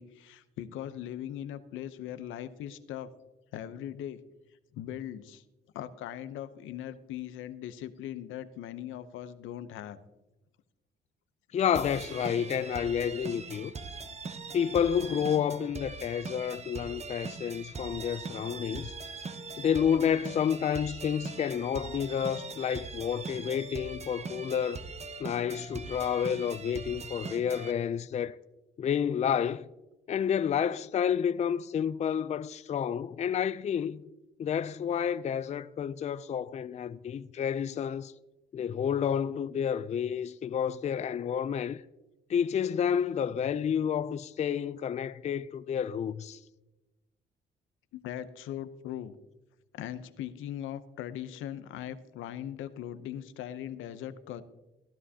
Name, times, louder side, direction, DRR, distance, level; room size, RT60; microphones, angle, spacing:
voice 1, 0.0-3.1 3.5-4.2 4.7-5.4 5.7-10.0 38.6-38.7 47.9-49.2 49.7-54.4, left 11 dB, 85° left, 0.7 m, -40 dB
voice 2, 11.5-13.7 14.5-18.9 19.6-24.8 25.2-28.4 28.8-29.7 30.1-34.0 34.4-38.1 38.5-41.8 42.3-46.4, left 8 dB, 35° left, 0.4 m, -30 dB
sound 1, 11.7-27.7, right 4 dB, 35° right, 0.9 m, -41 dB
15.0 x 11.0 x 2.8 m
cardioid pair, 90°, 20 cm